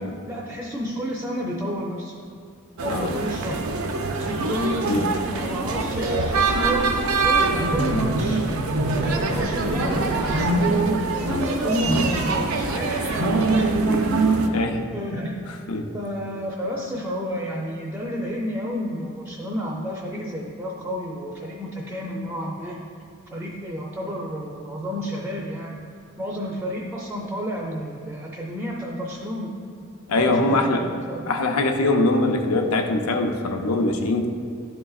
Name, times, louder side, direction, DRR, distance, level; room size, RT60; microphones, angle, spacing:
voice 1, 0.2-2.2 2.8-3.8 4.2-5.0 5.3-8.4 8.9-10.6 11.2-14.3 14.9-15.3 15.9-22.8 23.3-25.8 26.2-29.5 30.1-31.3, equal, 10° right, -3 dB, 0.4 m, -30 dB
sound 1, 2.8-14.5, right 3 dB, 70° right, 0.5 m, -23 dB
voice 2, 30.1-30.8 31.3-34.3, left 2 dB, 90° left, 4 dB, 0.6 m, -22 dB
11.0 x 3.8 x 2.3 m, 2.3 s
head